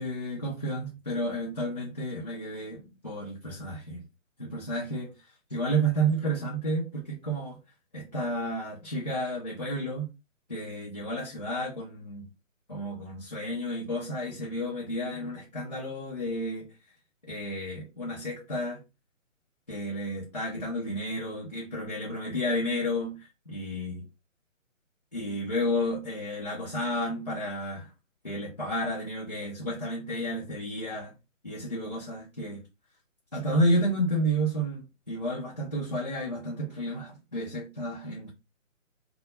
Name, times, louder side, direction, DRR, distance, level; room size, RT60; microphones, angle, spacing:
voice 1, 0.0-4.0 4.4-5.1 5.5-7.6 7.9-10.1 10.5-12.3 12.7-16.7 17.2-18.8 19.7-24.1 25.1-27.9 28.2-31.1 31.4-32.6 33.3-38.3, right 1 dB, 35° left, 0.4 m, -31 dB
2.1 x 2.1 x 2.8 m
hypercardioid pair, 160°, 40 cm